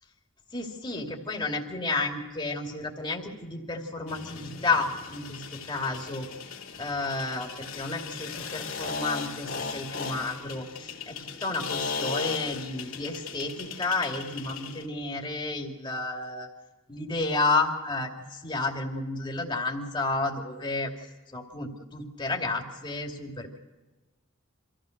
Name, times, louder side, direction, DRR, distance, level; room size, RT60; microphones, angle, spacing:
voice 1, 0.5-6.3 6.8-16.5 16.9-18.1 18.4-20.9 21.3-23.5, left 3 dB, 20° left, 1 dB, 2.6 m, -31 dB
sound 1, 4.1-14.9, left 5 dB, 75° left, 2.5 m, -37 dB
26.0 x 15.5 x 6.6 m, 1.2 s
head